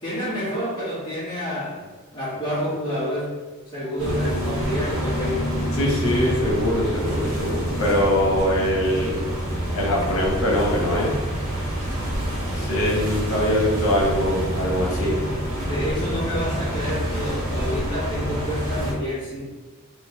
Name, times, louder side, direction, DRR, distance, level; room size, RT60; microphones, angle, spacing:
voice 1, 0.0-3.4 3.7-5.6 15.6-19.5, equal, 20° left, -9 dB, 1.2 m, -28 dB
sound 1, 4.0-18.9, equal, 90° right, 1.1 m, -27 dB
voice 2, 5.7-9.3 9.7-11.2 12.5-15.2, equal, 65° left, -4 dB, 1.1 m, -22 dB
3.2 x 2.7 x 3.1 m, 1.3 s
head